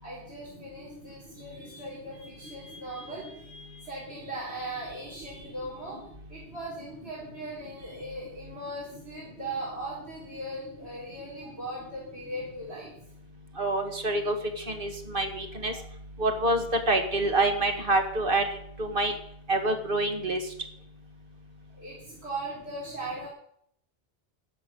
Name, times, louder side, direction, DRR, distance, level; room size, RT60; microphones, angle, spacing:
voice 1, 0.0-6.0 6.3-12.9 21.8-23.3, right 1 dB, 75° right, -5 dB, 4.1 m, -39 dB
voice 2, 13.6-15.7 16.2-18.5 18.8-19.1 19.5-20.4, right 2 dB, 55° right, 5 dB, 1.9 m, -26 dB
14.5 x 6.4 x 9.3 m, 0.70 s
omnidirectional pair, 1.1 m